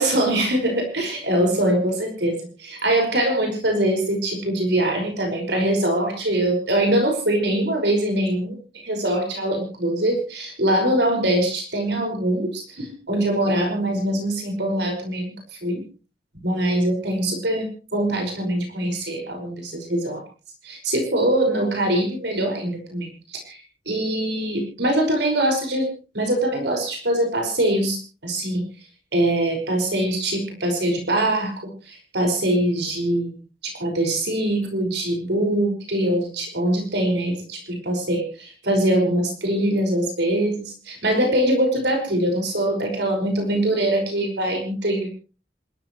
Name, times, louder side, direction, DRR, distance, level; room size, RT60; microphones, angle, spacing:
voice 1, 0.0-15.8 16.4-20.2 20.6-23.6 23.9-25.9 26.1-28.7 29.1-33.3 33.6-45.1, right 1 dB, 70° right, 3 dB, 5.5 m, -23 dB
27.0 x 14.0 x 3.1 m, 0.35 s
head